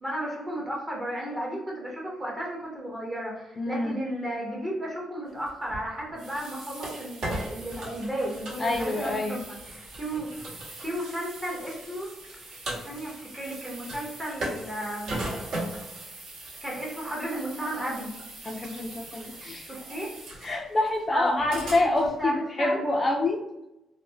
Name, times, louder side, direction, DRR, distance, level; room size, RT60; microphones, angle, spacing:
voice 1, 0.0-10.3 10.8-12.1 12.5-12.6 12.8-15.2 16.6-18.1 19.6-20.1 21.1-22.8, right 1 dB, 15° right, -3 dB, 0.7 m, -34 dB
voice 2, 3.6-4.0 8.6-9.5 18.4-19.7 20.4-23.4, left 2 dB, 25° left, 2 dB, 0.3 m, -27 dB
sound 1, 5.5-22.2, right 1 dB, 60° right, 1.1 m, -39 dB
4.0 x 2.0 x 2.6 m, 0.94 s
cardioid pair, 165°, 0 cm